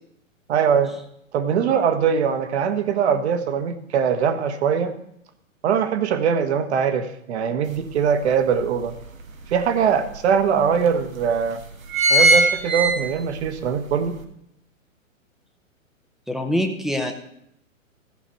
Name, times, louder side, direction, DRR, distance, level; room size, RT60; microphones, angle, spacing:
voice 1, 0.5-1.0 1.3-4.9 5.6-8.9 9.5-11.6 12.1-14.2, right 7 dB, 55° right, 10 dB, 1.3 m, -22 dB
sound 1, 7.7-7.8 8.2-9.4 10.1-10.2 10.4-10.5 11.2-11.4 11.6-13.5 13.9-14.0, right 2 dB, 85° right, 1.6 m, -19 dB
voice 2, 16.3-17.1, equal, ahead, 4 dB, 0.6 m, -24 dB
15.0 x 5.0 x 6.2 m, 0.74 s
hypercardioid pair, 125°, 40 cm